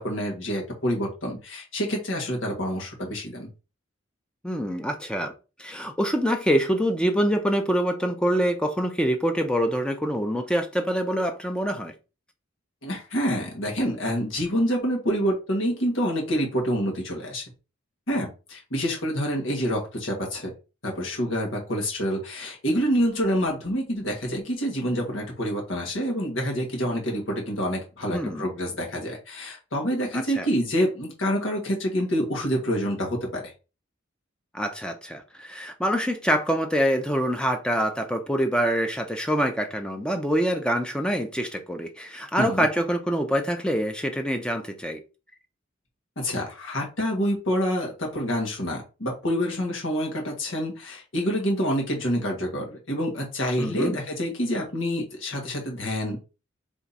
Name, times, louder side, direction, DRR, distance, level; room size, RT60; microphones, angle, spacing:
voice 1, 0.0-3.5 12.8-17.5 18.1-20.5 20.8-33.4 42.4-42.7 46.2-56.2, equal, 80° left, 1.8 m, -27 dB
voice 2, 4.4-5.3 5.6-11.9 28.1-28.5 30.1-30.5 34.5-45.0 53.6-53.9, equal, 5° left, 0.6 m, -25 dB
3.7 x 3.4 x 4.1 m
head